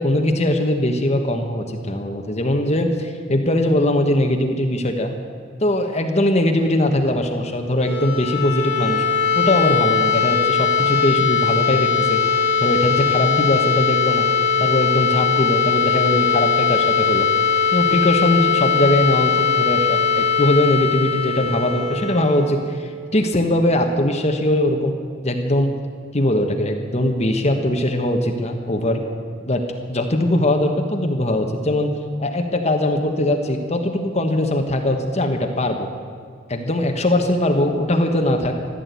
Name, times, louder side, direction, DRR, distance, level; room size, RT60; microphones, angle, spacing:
voice 1, 0.0-5.1 5.6-9.0 9.4-12.2 12.6-14.3 14.6-17.3 17.7-24.9 25.2-25.7 26.1-29.0 29.5-29.6 29.9-31.9 32.2-35.9 36.5-38.5, left 1 dB, 35° left, 4 dB, 1.2 m, -20 dB
sound 1, 7.7-23.5, left 6 dB, 55° right, 2.6 m, -20 dB
15.5 x 11.0 x 8.3 m, 2.2 s
head